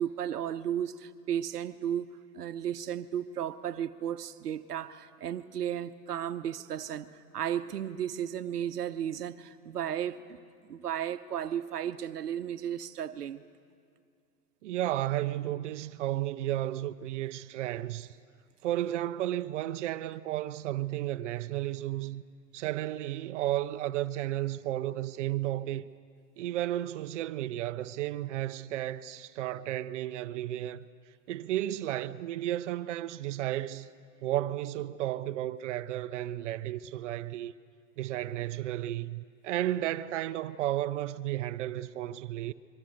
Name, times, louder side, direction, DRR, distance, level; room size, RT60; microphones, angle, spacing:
voice 1, 0.0-2.1 2.3-10.2 10.7-13.4, right 10 dB, 85° right, 0.9 m, -34 dB
voice 2, 14.6-18.1 18.6-22.2 22.5-25.9 26.4-30.9 31.3-33.9 34.2-37.5 38.0-42.5, right 14 dB, 50° right, 0.7 m, -33 dB
25.0 x 23.0 x 6.4 m
hypercardioid pair, 125°, 45 cm